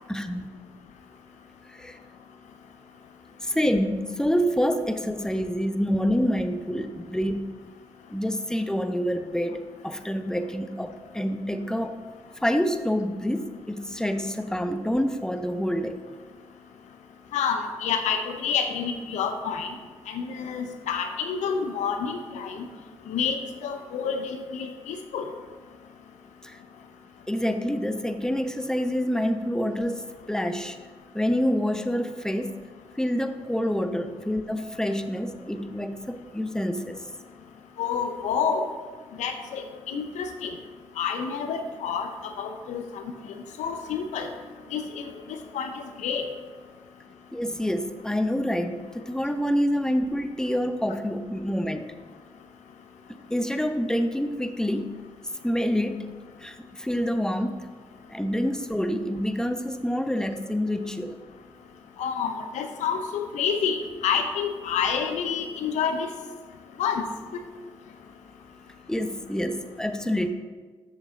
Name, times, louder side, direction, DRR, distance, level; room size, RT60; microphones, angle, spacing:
voice 1, 0.1-0.5 1.7-2.0 3.4-7.4 8.1-11.9 12.4-16.0 26.4-26.6 27.3-30.8 31.1-32.5 33.0-37.0 47.3-51.9 53.3-55.0 55.4-57.7 58.1-61.2 68.9-70.3, equal, 5° left, 8 dB, 0.7 m, -27 dB
voice 2, 17.3-19.7 20.1-22.7 23.1-25.2 37.8-38.7 39.2-40.5 41.0-43.0 43.6-44.3 44.7-46.2 62.0-66.1 66.8-67.0, left 6 dB, 85° left, 6 dB, 0.7 m, -28 dB
7.5 x 6.3 x 3.8 m, 1.4 s
supercardioid pair, 45°, 12 cm